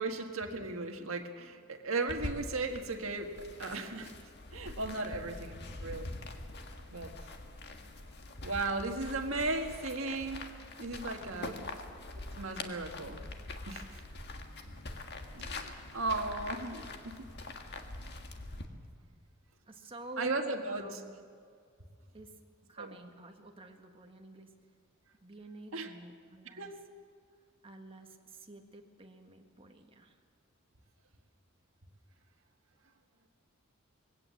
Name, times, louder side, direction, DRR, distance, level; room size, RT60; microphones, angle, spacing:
voice 1, 0.0-6.1 6.9-7.1 8.4-10.5 10.8-11.7 12.3-13.2 13.7-14.0 15.3-17.2 20.2-21.0 22.8-23.0 25.7-25.9 26.5-26.8, right 3 dB, 70° right, 4 dB, 1.7 m, -36 dB
sound 1, 2.1-18.7, left 2 dB, 55° left, 1.7 m, -44 dB
voice 2, 11.2-11.8 19.7-21.2 22.1-22.3 22.7-24.5 25.2-26.7 27.6-30.2, right 2 dB, 25° right, 3 dB, 1.6 m, -50 dB
21.0 x 17.0 x 7.6 m, 2.2 s
head